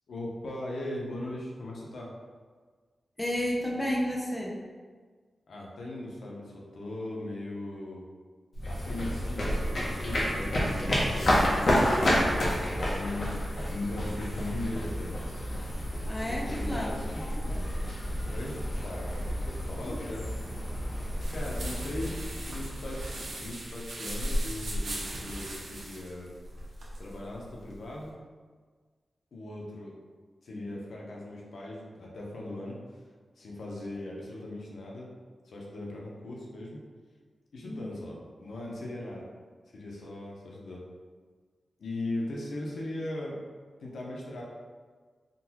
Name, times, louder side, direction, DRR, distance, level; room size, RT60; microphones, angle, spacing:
voice 1, 0.1-2.1 5.5-8.0 8.7-11.8 12.8-15.2 16.0-17.3 18.3-20.3 21.3-22.2 22.5-23.0 23.4-26.3 27.0-28.1 29.3-29.9 30.4-32.8 33.4-35.1 35.4-36.8 37.5-39.2 39.7-40.8 41.8-43.4 43.8-44.4, left 1 dB, 85° left, -3 dB, 0.6 m, -39 dB
voice 2, 3.2-4.6 16.1-17.0 17.5-17.7 19.8-20.0 30.5-30.7 37.7-38.0, equal, 10° left, -2 dB, 0.4 m, -32 dB
sound 1, 8.5-23.7, equal, 50° left, 0.7 m, -30 dB
sound 2, 8.9-14.3, left 1 dB, 20° right, 1.1 m, -48 dB
sound 3, 21.2-28.1, equal, 90° right, 0.6 m, -37 dB
3.7 x 2.2 x 2.8 m, 1.5 s
wide cardioid pair, 175°, 0 cm